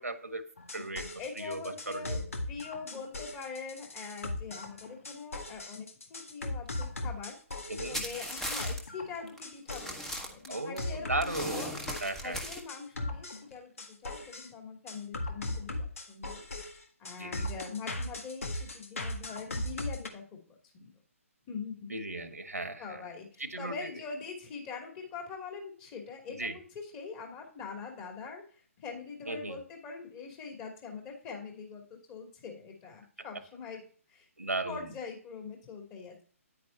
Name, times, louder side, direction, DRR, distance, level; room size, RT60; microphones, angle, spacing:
voice 1, 0.0-2.3 7.7-8.0 10.5-12.4 17.2-17.5 21.9-23.0 23.4-24.0 26.3-26.6 29.3-29.6 34.4-34.9, right 2 dB, 85° right, 8 dB, 1.6 m, -37 dB
sound 1, 0.6-10.0 10.5-12.2 12.7-14.5 14.9-20.1, left 2 dB, 65° left, 1.7 m, -38 dB
voice 2, 1.2-2.2 2.5-7.4 7.9-11.7 12.2-16.4 17.0-20.4 20.7-20.9 21.5-21.9 22.8-28.4 28.8-33.8 34.1-34.3 34.6-36.2, left 5 dB, 20° left, 1 dB, 2.6 m, -43 dB
sound 2, 7.9-8.8 9.3-9.4 9.7-10.8 11.2-12.6, equal, 5° left, 1.3 m, -37 dB
10.0 x 9.3 x 2.8 m, 0.43 s
figure-of-eight pair, 140°, 8 cm